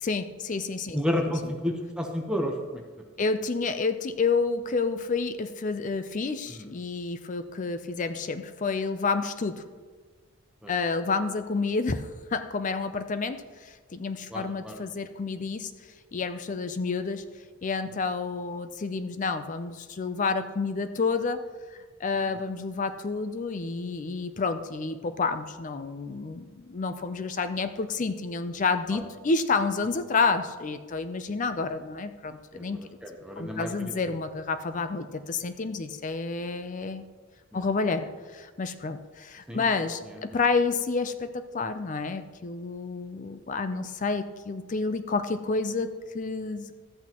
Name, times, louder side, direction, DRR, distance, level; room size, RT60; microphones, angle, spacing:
voice 1, 0.0-1.0 1.4-1.5 3.2-9.6 10.7-15.7 16.1-17.2 17.6-21.5 21.7-32.8 33.4-37.1 37.5-46.7, left 4 dB, 35° left, 10 dB, 0.4 m, -29 dB
voice 2, 0.9-2.8 6.5-6.7 10.6-10.7 14.3-14.8 22.3-22.4 28.9-29.0 32.5-33.9 37.5-37.6 39.5-39.7 40.3-40.4, left 1 dB, 5° right, 1 dB, 0.8 m, -31 dB
13.5 x 8.3 x 3.0 m, 1.4 s
head